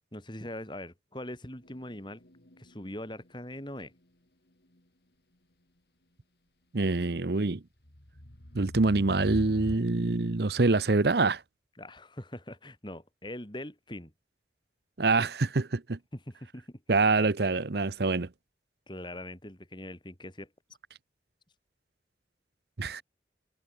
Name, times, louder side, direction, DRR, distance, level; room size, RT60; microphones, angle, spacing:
voice 1, 0.1-2.2 2.6-3.9 11.8-14.1 16.1-16.8 18.9-20.5, left 1 dB, 25° left, 4.2 m, -42 dB
sound 1, 1.6-3.6 4.8-4.9 7.8-9.8, equal, 60° left, 3.9 m, -43 dB
voice 2, 6.7-7.6 8.5-11.4 15.0-16.0 16.9-18.3 22.8-23.0, right 3 dB, 60° right, 0.8 m, -25 dB
head